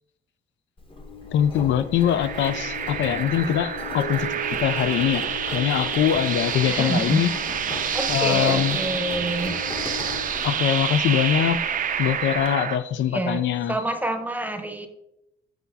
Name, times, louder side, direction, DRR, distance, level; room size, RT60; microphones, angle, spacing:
Engine, 0.8-12.5, left 3 dB, 25° left, 1.0 m, -37 dB
voice 1, 1.3-7.3 8.1-8.8 9.6-9.7 10.4-11.6 12.0-13.8, left 10 dB, 70° left, 12 dB, 0.4 m, -23 dB
sound 1, 2.0-12.8, right 8 dB, 45° right, 0.5 m, -28 dB
Keyboard (musical), 4.0-7.0, right 6 dB, 90° left, 1.9 m, -40 dB
voice 2, 6.6-7.3 7.9-9.6 13.1-13.4 13.7-14.9, right 2 dB, 10° right, 7 dB, 0.8 m, -27 dB
8.0 x 5.7 x 2.7 m, 0.86 s
cardioid pair, 90°, 20 cm